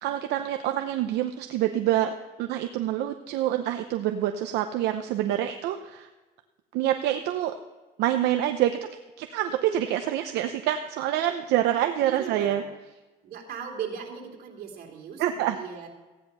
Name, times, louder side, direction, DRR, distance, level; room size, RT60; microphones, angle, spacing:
voice 1, 0.0-6.1 6.7-7.5 8.0-8.8 9.2-12.6 15.2-15.6, right 12 dB, 85° right, 7 dB, 0.8 m, -26 dB
voice 2, 12.0-12.7 13.2-15.9, right 7 dB, 65° right, 1 dB, 3.2 m, -38 dB
15.5 x 10.0 x 5.5 m, 1.2 s
cardioid pair, 110°, 17 cm